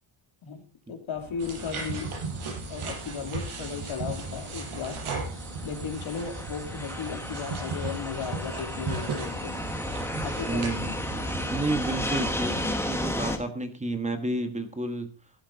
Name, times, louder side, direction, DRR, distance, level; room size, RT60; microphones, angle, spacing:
voice 1, 0.9-5.0 5.6-9.6 10.2-11.0, left 7 dB, 70° left, 4 dB, 3.0 m, -36 dB
Fixed-wing aircraft airplane, 1.2-13.4, left 1 dB, 5° left, 1.7 m, -34 dB
sound 1, 1.4-12.7, right 4 dB, 80° right, 7.7 m, -36 dB
voice 2, 10.5-11.0 11.4-15.1, right 2 dB, 15° right, 6 dB, 1.5 m, -31 dB
16.0 x 12.0 x 4.1 m, 0.37 s
wide cardioid pair, 165°, 49 cm